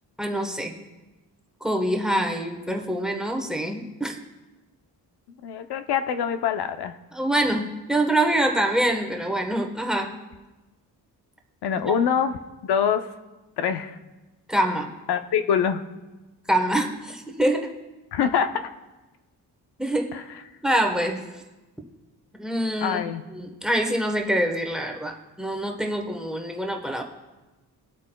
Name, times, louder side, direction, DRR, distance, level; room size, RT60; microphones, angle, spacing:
voice 1, 0.2-0.7 1.6-4.2 7.1-10.1 14.5-14.9 16.5-17.7 19.8-20.1 20.6-21.3 22.4-23.0 23.3-27.0, right 1 dB, ahead, 3 dB, 1.1 m, -25 dB
voice 2, 5.4-7.0 11.6-13.0 13.6-14.0 15.1-15.8 18.1-18.7 20.1-20.4 22.8-23.2, left 8 dB, 80° left, 8 dB, 0.7 m, -25 dB
20.5 x 8.3 x 2.2 m, 1.1 s
wide cardioid pair, 140°, 39 cm